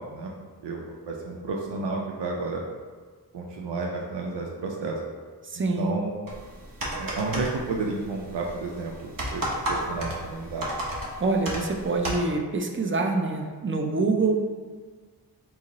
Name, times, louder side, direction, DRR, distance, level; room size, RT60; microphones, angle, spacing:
voice 1, 0.6-2.6 3.3-5.0 5.8-6.2 7.0-10.7, right 3 dB, 85° right, -1 dB, 0.5 m, -31 dB
voice 2, 5.4-5.9 11.2-14.4, right 3 dB, 30° right, 2 dB, 0.6 m, -25 dB
sound 1, 6.3-12.2, right 1 dB, 55° right, 1.0 m, -33 dB
4.8 x 2.0 x 4.1 m, 1.5 s
cardioid pair, 40°, 41 cm